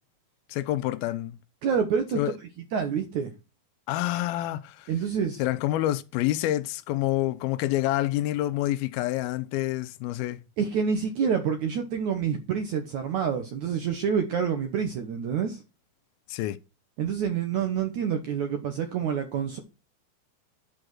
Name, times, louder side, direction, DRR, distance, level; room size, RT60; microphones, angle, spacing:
voice 1, 0.5-1.4 2.2-2.3 3.9-4.9 5.4-10.4 16.3-16.6, left 15 dB, 80° left, 2.3 m, -27 dB
voice 2, 1.6-2.2 2.7-3.3 4.9-5.4 10.6-15.6 17.0-19.6, right 7 dB, 70° right, 1.9 m, -27 dB
11.0 x 5.1 x 6.1 m
omnidirectional pair, 4.8 m